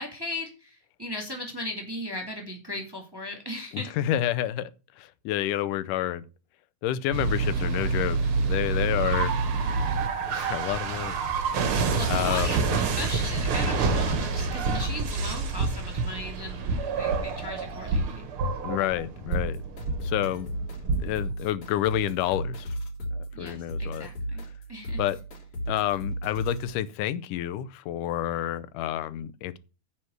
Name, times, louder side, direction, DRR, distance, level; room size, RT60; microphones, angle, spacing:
voice 1, 0.0-3.9 7.3-7.6 9.5-9.9 11.9-18.3 23.3-24.4 24.7-25.2, left 1 dB, 10° right, 1.9 m, -37 dB
voice 2, 3.7-4.7 5.0-6.2 6.8-9.3 10.3-11.5 11.8-12.6 18.6-19.6 20.0-20.5 21.0-22.7 23.1-24.1 25.0-25.2 25.7-29.6, left 12 dB, 90° left, 2.3 m, -29 dB
sound 1, 7.1-21.3, right 4 dB, 55° right, 1.8 m, -27 dB
sound 2, 19.3-26.7, right 1 dB, 60° left, 4.7 m, -35 dB
9.8 x 4.4 x 7.8 m
omnidirectional pair, 3.6 m